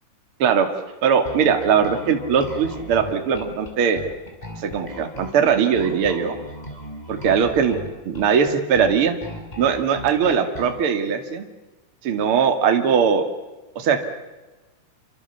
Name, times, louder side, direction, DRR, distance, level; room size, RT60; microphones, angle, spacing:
voice 1, 1.0-4.0 4.6-6.4 7.1-7.8 8.1-9.2 9.6-11.5 12.0-13.2 13.8-14.1, right 7 dB, 40° right, 6 dB, 2.5 m, -20 dB
Bass guitar, 1.2-10.8, left 1 dB, 10° left, 5.2 m, -37 dB
28.0 x 25.5 x 7.1 m, 1.2 s
omnidirectional pair, 4.5 m